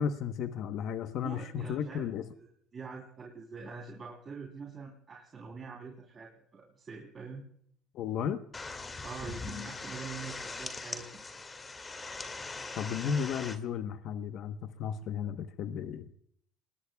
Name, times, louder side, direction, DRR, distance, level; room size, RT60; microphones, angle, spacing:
voice 1, 0.0-2.2 7.9-8.4 12.8-16.1, left 7 dB, 60° left, 7 dB, 1.0 m, -34 dB
voice 2, 1.2-2.5 2.7-7.4 9.0-11.1, right 5 dB, 35° right, 0 dB, 3.3 m, -45 dB
sound 1, 8.5-13.6, left 3 dB, 20° left, 2.2 m, -41 dB
28.5 x 20.0 x 2.3 m, 0.64 s
cardioid pair, 110°, 0 cm